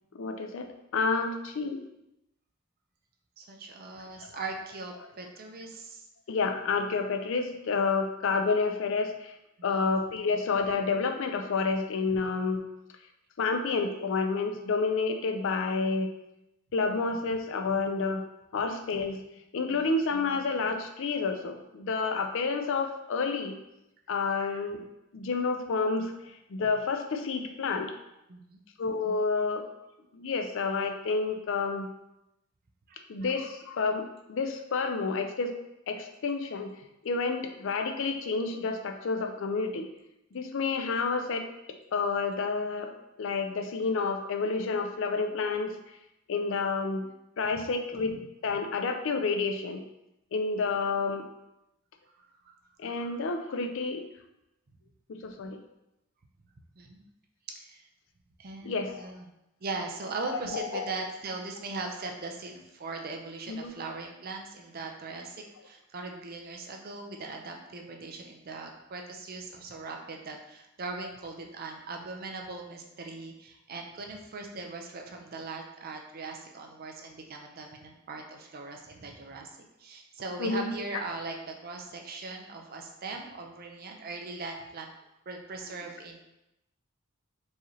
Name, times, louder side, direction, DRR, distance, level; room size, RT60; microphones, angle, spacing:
voice 1, 0.1-0.7 0.9-1.8 4.2-4.4 6.3-9.4 9.6-12.6 13.4-16.1 16.7-18.2 18.5-19.2 19.5-23.6 24.1-24.8 25.1-27.9 28.8-29.6 30.1-31.9 33.1-35.5 35.9-36.7 37.0-39.9 40.3-41.4 41.9-42.9 43.2-45.8 46.3-47.1 47.4-49.8 50.3-51.3 52.8-54.0 55.1-55.6 58.6-59.1 60.3-60.8 63.5-63.7 80.4-80.7, left 4 dB, 65° left, 5 dB, 0.4 m, -29 dB
voice 2, 3.4-6.0 9.6-9.8 19.7-19.8 28.3-28.6 32.9-33.0 52.2-52.5 56.8-57.0 57.5-57.9 58.4-59.3 59.6-84.9 85.3-86.2, right 3 dB, 45° right, 2 dB, 0.5 m, -40 dB
4.6 x 2.8 x 3.1 m, 0.88 s
head